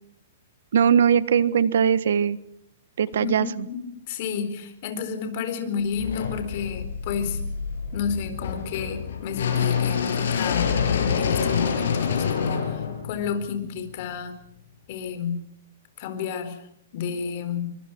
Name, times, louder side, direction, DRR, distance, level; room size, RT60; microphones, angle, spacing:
voice 1, 0.7-2.4 3.0-3.7, right 8 dB, 70° right, 16 dB, 1.4 m, -20 dB
voice 2, 3.2-3.8 4.1-7.4 7.9-10.8 11.2-14.3 14.9-15.4 16.0-16.7 16.9-17.7, left 6 dB, 40° left, 9 dB, 4.2 m, -30 dB
sound 1, 6.0-14.0, left 7 dB, 70° left, 6.9 m, -27 dB
24.5 x 24.0 x 6.1 m, 0.72 s
hypercardioid pair, 160°, 0 cm